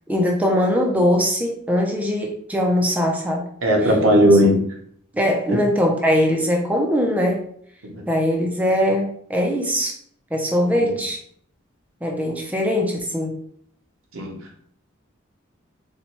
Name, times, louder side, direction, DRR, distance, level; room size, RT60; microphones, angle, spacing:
voice 1, 0.1-3.5 5.1-7.4 8.1-9.9 10.3-11.2 12.0-13.3, equal, 10° right, 0.4 m, -21 dB
voice 2, 3.6-4.6 5.5-5.6 7.8-8.0 10.7-10.9 14.1-14.4, equal, 80° right, 0.8 m, -17 dB
4.1 x 2.2 x 2.9 m
head